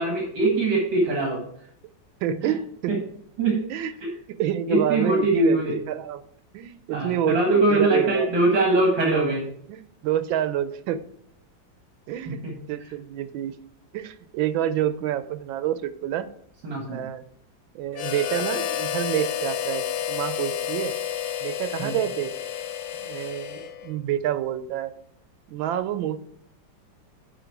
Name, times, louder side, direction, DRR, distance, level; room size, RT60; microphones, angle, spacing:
voice 1, 0.0-1.4 2.4-2.5 2.9-3.0 3.4-3.6 4.0-4.1 4.7-5.7 6.9-9.4 12.3-12.5 16.6-17.0 21.8-22.0, right 2 dB, 70° right, -1 dB, 2.2 m, -22 dB
voice 2, 2.2-2.9 3.7-3.9 4.3-6.2 6.5-8.3 9.0-9.3 9.7-11.0 12.1-12.4 12.7-13.5 13.9-16.3 16.9-17.2 17.7-20.9 21.4-22.3 23.0-24.9 25.5-26.2, right 10 dB, 85° right, 12 dB, 1.4 m, -28 dB
Harmonica, 17.9-24.0, left 10 dB, 75° left, 1.3 m, -30 dB
9.0 x 4.8 x 4.6 m, 0.68 s
omnidirectional pair, 2.1 m